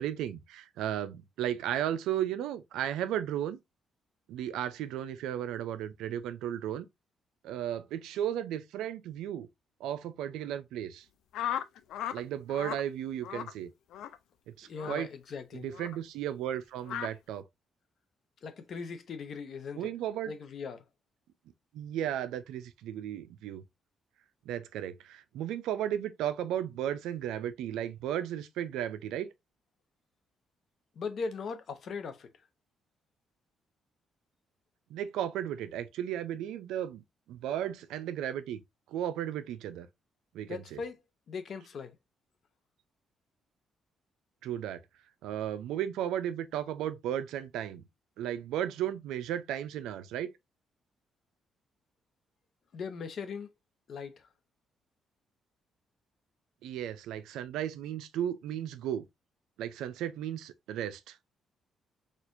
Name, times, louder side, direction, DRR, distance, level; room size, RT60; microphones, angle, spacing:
voice 1, 0.0-3.6 4.3-6.9 7.4-9.5 9.8-11.1 12.1-13.7 14.6-15.1 15.6-17.4 19.8-20.3 21.7-23.6 24.5-29.3 34.9-37.0 37.3-38.6 38.9-39.9 40.3-40.8 44.4-44.8 45.2-47.8 48.2-50.3 56.6-59.1 59.6-61.2, right 11 dB, 90° right, 0.4 m, -34 dB
sound 1, 11.3-12.2 12.5-12.8 13.2-13.5 13.9-14.2 14.8-15.0 15.7-16.0 16.8-17.1, left 10 dB, 85° left, 0.3 m, -36 dB
voice 2, 14.6-15.7 18.4-19.9 20.2-20.8 30.9-32.5 40.5-41.0 41.3-42.0 52.7-53.5 53.9-54.3, left 5 dB, 60° left, 0.7 m, -39 dB
4.3 x 2.4 x 2.5 m
cardioid pair, 90°, 0 cm